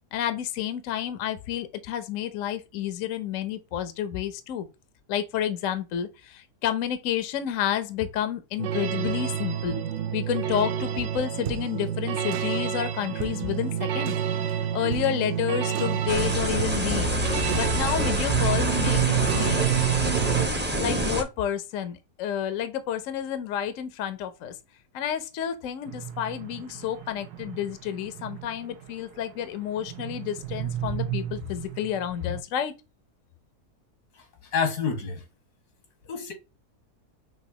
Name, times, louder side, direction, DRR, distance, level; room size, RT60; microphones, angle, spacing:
voice 1, 0.1-4.7 5.1-9.8 10.1-17.1 17.5-19.7 20.7-24.5 24.9-32.7, left 10 dB, 65° left, 0.9 m, -30 dB
sound 1, 8.6-20.5, right 10 dB, 65° right, 0.7 m, -28 dB
sound 2, 16.1-21.2, equal, 10° right, 0.7 m, -27 dB
sound 3, 25.8-32.4, right 10 dB, 85° right, 1.2 m, -37 dB
voice 2, 34.5-35.2 36.0-36.3, left 6 dB, 90° left, 1.9 m, -27 dB
6.1 x 2.6 x 2.8 m
omnidirectional pair, 1.6 m